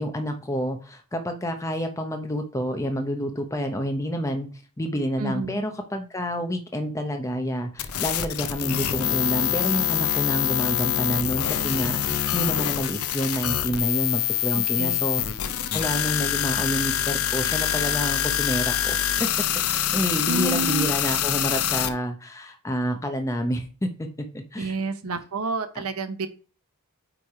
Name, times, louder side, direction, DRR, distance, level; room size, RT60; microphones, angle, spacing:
voice 1, 0.0-4.5 4.8-19.0 19.7-24.7 25.1-25.2 25.7-25.8, equal, 15° left, 5 dB, 0.6 m, -29 dB
voice 2, 5.2-5.6 14.5-15.0 20.3-20.9 24.6-26.3, right 3 dB, 75° right, 10 dB, 0.7 m, -29 dB
sound 1, 7.8-21.9, left 10 dB, 75° left, 0.7 m, -25 dB
8.6 x 3.3 x 4.7 m, 0.37 s
head